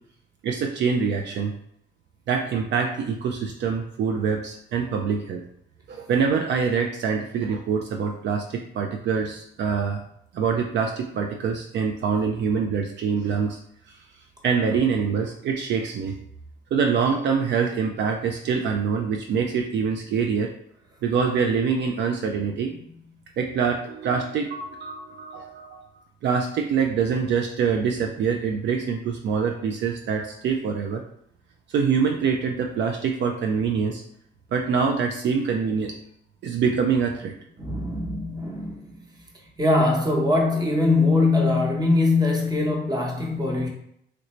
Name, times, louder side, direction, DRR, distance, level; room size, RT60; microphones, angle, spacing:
voice 1, 0.4-1.5 2.3-5.4 5.9-10.0 10.3-13.6 14.4-16.1 16.7-20.5 21.0-22.7 23.4-25.8 26.2-31.0 31.7-34.0 34.5-36.0 36.4-37.3, right 6 dB, 65° right, 3 dB, 0.4 m, -25 dB
voice 2, 37.6-39.0 39.6-43.7, left 2 dB, 20° right, 0 dB, 0.9 m, -22 dB
3.2 x 2.6 x 3.1 m, 0.72 s
cardioid pair, 90°, 20 cm